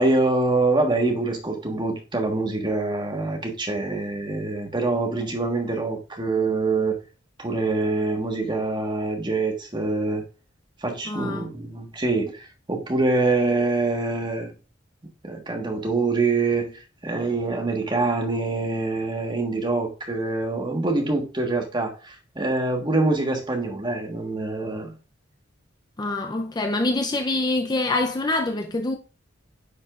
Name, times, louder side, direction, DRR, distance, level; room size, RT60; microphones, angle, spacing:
voice 1, 0.0-7.0 7.4-10.2 10.8-14.5 15.2-24.9, right 3 dB, 25° right, 1.4 m, -25 dB
voice 2, 11.1-11.5 26.0-29.0, left 2 dB, 20° left, 0.6 m, -25 dB
9.7 x 5.5 x 2.4 m
head